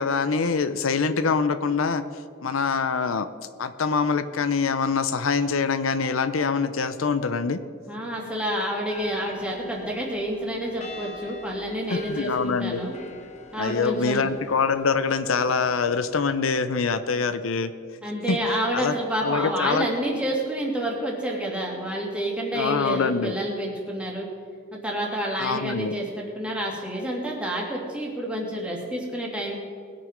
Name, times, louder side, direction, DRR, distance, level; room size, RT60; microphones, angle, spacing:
voice 1, 0.0-2.0 2.4-3.3 3.6-7.6 11.9-12.8 13.6-17.7 18.3-18.4 18.7-18.9 19.2-19.9 22.5-23.4 25.4-25.9, left 5 dB, 90° left, 11 dB, 0.6 m, -24 dB
voice 2, 7.9-12.9 13.5-14.3 18.0-24.3 24.7-29.6, equal, 5° right, -2 dB, 2.4 m, -29 dB
sound 1, 8.8-16.3, left 3 dB, 35° left, 1.1 m, -45 dB
20.5 x 6.9 x 5.1 m, 2.3 s
head